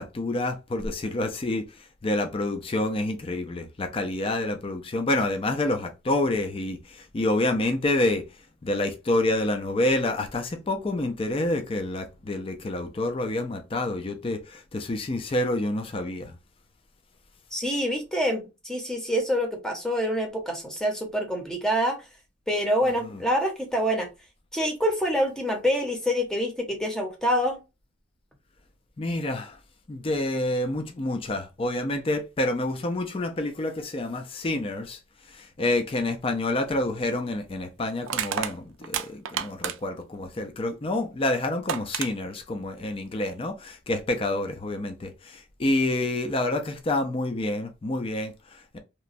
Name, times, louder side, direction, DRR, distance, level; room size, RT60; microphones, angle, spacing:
voice 1, 0.0-8.2 8.6-16.3 23.0-23.2 29.0-29.6 29.9-35.0 35.3-48.8, left 2 dB, 25° left, 0.4 m, -28 dB
voice 2, 17.5-22.0 22.5-24.1 24.5-27.6, equal, 5° left, 0.7 m, -26 dB
Crushing, 36.7-36.8 38.1-40.0 41.2-41.3 41.7-42.1, right 9 dB, 70° right, 0.4 m, -30 dB
2.9 x 2.2 x 2.5 m
head